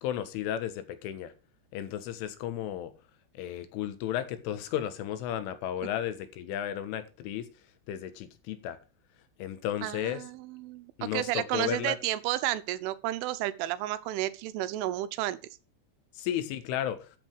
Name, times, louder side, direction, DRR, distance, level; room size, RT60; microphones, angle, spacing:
voice 1, 0.0-1.3 1.7-2.9 3.4-7.5 7.9-8.8 9.4-10.2 11.0-12.0 16.2-17.1, left 11 dB, 80° left, 3.9 m, -33 dB
voice 2, 9.8-15.4, right 15 dB, 85° right, 3.3 m, -32 dB
13.5 x 7.9 x 4.7 m
omnidirectional pair, 5.6 m